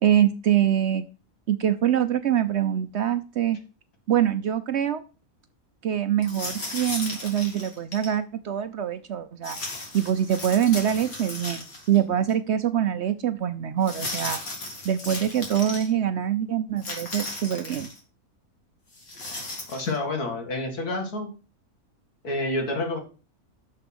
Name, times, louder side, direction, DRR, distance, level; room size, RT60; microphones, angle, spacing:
voice 1, 0.0-1.0 1.5-3.6 4.1-5.0 5.8-9.6 9.9-14.4 14.8-17.9, right 10 dB, 65° right, 11 dB, 0.7 m, -24 dB
sound 1, 6.2-8.1 9.4-12.0 12.3-12.4 13.8-15.9 16.8-18.0 18.9-20.0, left 2 dB, 70° left, 2.7 m, -35 dB
voice 2, 19.7-21.3 22.2-23.0, left 2 dB, 85° left, 4 dB, 2.6 m, -28 dB
6.9 x 6.7 x 6.1 m, 0.35 s
omnidirectional pair, 1.6 m